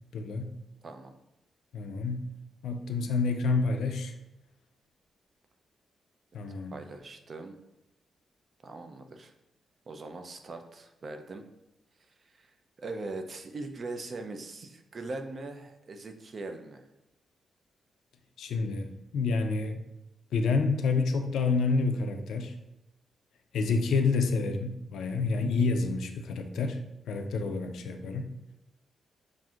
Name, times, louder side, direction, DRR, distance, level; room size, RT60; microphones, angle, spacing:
voice 1, 0.1-0.5 1.7-2.2 2.6-4.1 6.3-6.7 18.4-18.9 19.1-19.8 20.3-22.5 23.5-26.8 27.1-28.3, left 4 dB, 85° left, 6 dB, 0.4 m, -28 dB
voice 2, 0.8-1.2 6.7-7.5 8.6-9.3 9.9-11.4 12.2-12.5 12.8-16.8, right 3 dB, 35° right, 6 dB, 0.4 m, -41 dB
5.7 x 2.5 x 2.4 m, 0.91 s
wide cardioid pair, 155°, 0 cm